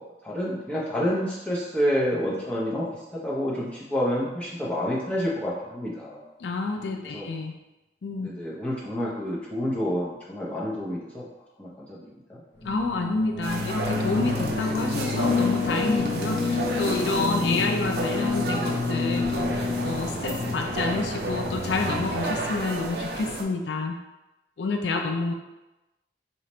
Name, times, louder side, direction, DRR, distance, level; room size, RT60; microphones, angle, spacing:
voice 1, 0.2-2.9 3.2-6.2 7.1-7.3 8.2-11.3 11.6-12.4, equal, 5° left, -7 dB, 0.7 m, -28 dB
voice 2, 6.4-7.5 8.0-8.3 12.6-24.0 24.6-25.3, left 3 dB, 90° left, 4 dB, 0.4 m, -29 dB
sound 1, 12.6-22.6, left 4 dB, 40° left, 0.9 m, -29 dB
sound 2, 13.4-23.4, right 2 dB, 65° right, 0.5 m, -32 dB
3.0 x 2.4 x 4.2 m, 1.0 s
head